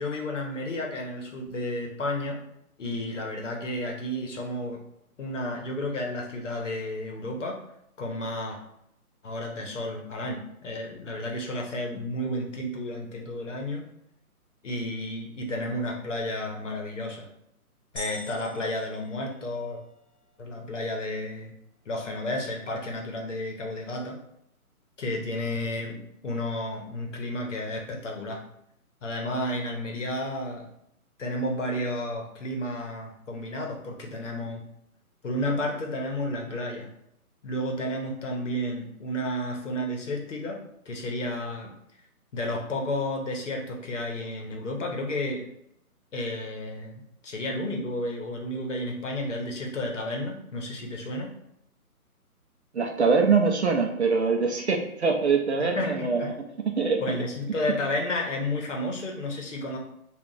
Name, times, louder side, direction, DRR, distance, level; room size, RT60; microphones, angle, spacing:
voice 1, 0.0-2.4 2.8-4.8 5.2-7.6 8.0-8.6 9.2-13.8 14.6-17.3 17.9-19.8 20.4-21.5 21.9-24.2 25.0-28.4 29.0-30.7 31.2-34.6 35.2-36.9 37.4-40.6 40.9-41.7 42.3-45.4 46.1-51.3 55.6-56.3 57.0-59.8, left 1 dB, 55° left, 1 dB, 0.9 m, -32 dB
sound 1, 18.0-19.9, equal, ahead, 0.8 m, -42 dB
voice 2, 52.7-56.3 56.8-57.0, right 4 dB, 50° right, 2 dB, 0.6 m, -23 dB
2.9 x 2.4 x 3.8 m, 0.78 s
hypercardioid pair, 160°, 45 cm